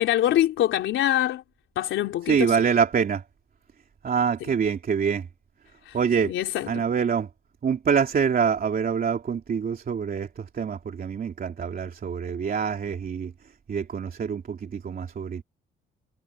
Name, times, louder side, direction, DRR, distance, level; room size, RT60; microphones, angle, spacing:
voice 1, 0.0-1.4 1.8-2.6 5.9-6.0 6.2-6.9, left 12 dB, 85° left, 3.8 m, -24 dB
voice 2, 2.3-3.2 4.0-5.3 5.9-6.3 6.7-7.3 7.6-13.3 13.7-15.4, right 6 dB, 45° right, 3.1 m, -25 dB
cardioid pair, 90°, 20 cm